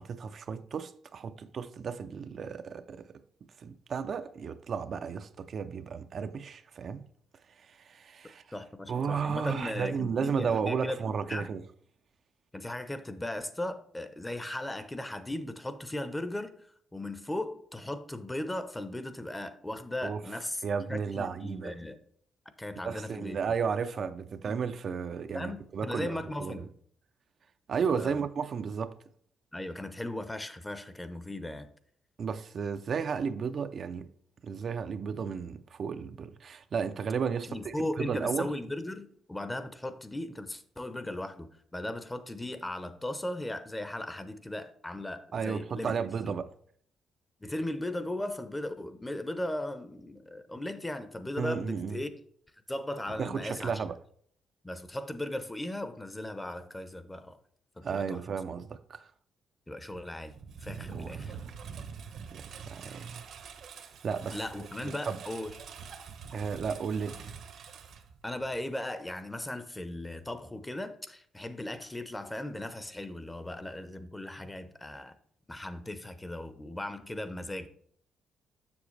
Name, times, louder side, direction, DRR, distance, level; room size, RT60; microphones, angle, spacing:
voice 1, 0.0-3.2 3.6-7.1 7.6-8.4 8.9-11.6 20.0-20.2 20.6-21.7 22.8-26.6 27.7-29.0 32.2-34.1 34.4-38.5 45.3-46.5 51.4-52.0 53.2-54.0 57.8-59.1 60.9-61.2 62.3-63.2 64.0-64.4 64.9-65.2 66.3-67.3, right 6 dB, 55° right, 0.4 m, -33 dB
voice 2, 8.5-11.0 11.3-11.5 12.5-20.6 20.9-22.0 22.6-23.4 24.5-24.6 25.3-26.7 27.9-28.2 29.5-31.7 37.5-46.0 46.2-46.3 47.4-52.1 52.7-53.8 54.6-57.4 57.8-58.2 59.7-61.4 64.3-65.6 68.2-75.2 75.5-77.7, left 1 dB, 15° left, 0.7 m, -37 dB
Engine, 59.9-68.7, right 6 dB, 70° right, 0.9 m, -45 dB
7.1 x 6.7 x 3.2 m
cardioid pair, 90°, 0 cm